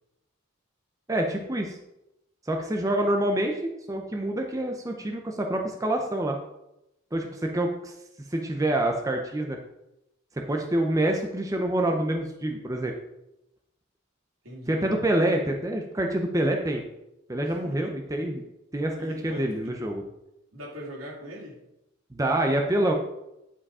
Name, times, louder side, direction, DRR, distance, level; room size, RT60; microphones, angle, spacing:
voice 1, 1.1-1.8 2.4-6.4 7.1-7.9 8.3-9.6 10.4-13.0 14.7-16.8 17.3-18.4 18.7-20.0 22.1-22.9, right 1 dB, 15° right, 2 dB, 0.7 m, -26 dB
voice 2, 14.4-14.9 17.4-17.9 19.0-19.8 20.5-21.6, equal, 80° right, -4 dB, 3.2 m, -41 dB
10.0 x 5.0 x 4.9 m, 0.88 s
head